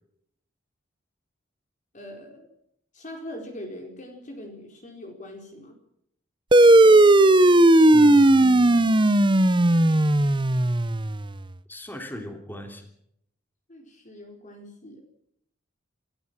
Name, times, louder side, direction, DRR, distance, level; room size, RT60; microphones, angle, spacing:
voice 1, 1.9-2.5 2.9-5.8 13.7-15.0, left 1 dB, 40° left, 3 dB, 4.3 m, -41 dB
sound 1, 6.5-11.4, right 1 dB, 25° right, 0.8 m, -16 dB
voice 2, 7.9-9.1 11.7-12.8, left 1 dB, 10° left, 5 dB, 3.2 m, -38 dB
28.0 x 14.5 x 7.5 m, 0.73 s
head